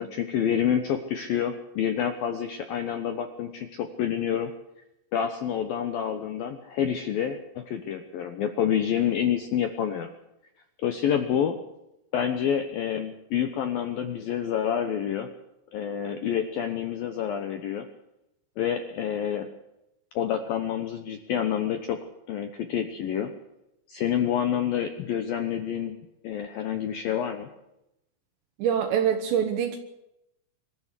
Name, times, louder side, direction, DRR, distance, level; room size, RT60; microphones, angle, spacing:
voice 1, 0.0-4.5 5.1-10.1 10.8-11.6 12.1-15.3 15.7-17.9 18.6-19.5 20.2-22.0 22.3-23.3 23.9-27.5, left 9 dB, 75° left, 7 dB, 2.1 m, -28 dB
voice 2, 28.6-29.8, right 8 dB, 70° right, 6 dB, 3.2 m, -24 dB
24.0 x 13.5 x 8.3 m, 0.86 s
omnidirectional pair, 5.7 m